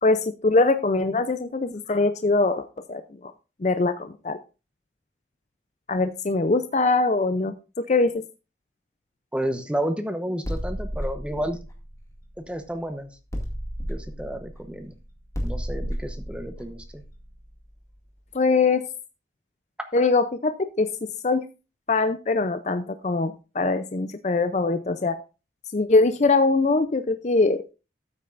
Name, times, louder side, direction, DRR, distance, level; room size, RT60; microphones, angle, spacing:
voice 1, 0.0-3.3 3.6-4.4 5.9-8.2 18.3-18.9 19.9-21.4 21.9-25.2 25.7-27.7, left 3 dB, 40° left, 10 dB, 0.5 m, -22 dB
voice 2, 9.3-11.6 12.4-13.1 13.9-14.9 15.4-17.0 19.8-19.9, right 1 dB, 5° right, 7 dB, 0.9 m, -31 dB
sound 1, 10.4-12.8 13.3-18.0, equal, 15° left, 2.1 m, -33 dB
13.0 x 8.8 x 2.5 m, 0.30 s
head